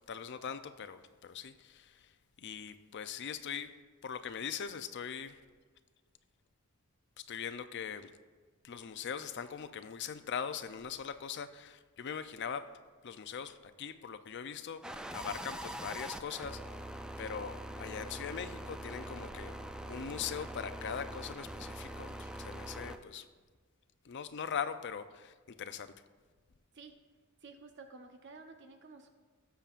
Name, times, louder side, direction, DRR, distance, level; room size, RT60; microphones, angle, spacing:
voice 1, 0.0-2.1 2.4-3.7 4.0-5.4 7.2-8.1 8.6-12.7 13.0-14.8 15.1-16.6 17.2-19.6 19.8-23.3 24.0-25.9, left 7 dB, 55° left, 11 dB, 0.5 m, -41 dB
sound 1, 14.8-23.0, right 1 dB, 5° right, 0.4 m, -43 dB
voice 2, 27.4-29.1, right 3 dB, 55° right, 6 dB, 0.7 m, -52 dB
17.5 x 6.9 x 2.5 m, 1.5 s
head